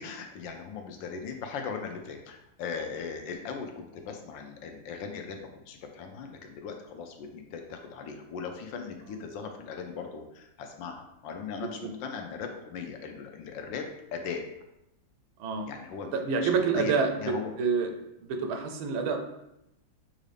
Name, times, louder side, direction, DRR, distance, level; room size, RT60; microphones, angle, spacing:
voice 1, 0.0-14.4 15.6-16.1 16.4-17.5, left 6 dB, 75° left, 4 dB, 1.2 m, -39 dB
voice 2, 16.1-17.9 18.2-19.2, right 5 dB, 90° right, 5 dB, 1.5 m, -28 dB
6.3 x 2.5 x 3.3 m, 0.84 s
omnidirectional pair, 2.1 m